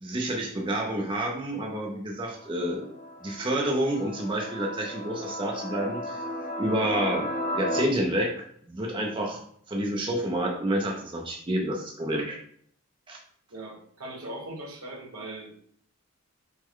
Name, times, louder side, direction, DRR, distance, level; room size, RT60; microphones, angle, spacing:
voice 1, 0.0-2.9 3.2-6.2 6.6-9.4 9.7-12.4 13.1-13.2, right 1 dB, 20° right, 0 dB, 0.5 m, -29 dB
sound 1, 2.3-7.8, left 1 dB, 40° left, 0.7 m, -35 dB
voice 2, 13.5-15.5, right 1 dB, 85° right, -1 dB, 1.5 m, -39 dB
6.1 x 2.2 x 3.7 m, 0.63 s
head